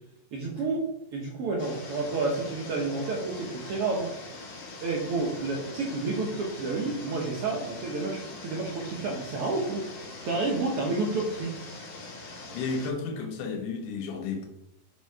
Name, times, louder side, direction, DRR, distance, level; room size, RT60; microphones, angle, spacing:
voice 1, 0.3-4.1 4.8-10.0 10.2-11.6, right 3 dB, 80° right, -2 dB, 1.2 m, -30 dB
sound 1, 1.6-12.9, left 3 dB, 55° left, 2.1 m, -43 dB
voice 2, 12.5-14.5, left 4 dB, 70° left, 3 dB, 2.5 m, -32 dB
7.4 x 4.5 x 4.7 m, 0.82 s
omnidirectional pair, 4.1 m